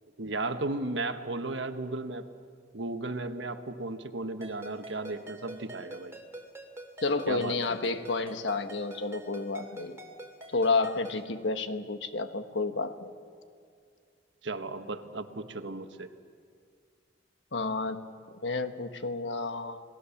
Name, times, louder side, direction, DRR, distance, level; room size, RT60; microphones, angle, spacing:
voice 1, 0.2-2.3 2.7-6.2 7.3-7.5 14.4-16.1, right 2 dB, 80° right, 8 dB, 1.3 m, -35 dB
Ringtone, 4.4-11.3, right 1 dB, 15° right, 2.8 m, -46 dB
voice 2, 7.0-10.0 10.5-13.1 17.5-19.8, left 3 dB, 75° left, 8 dB, 1.3 m, -31 dB
28.5 x 19.0 x 7.2 m, 2.2 s
head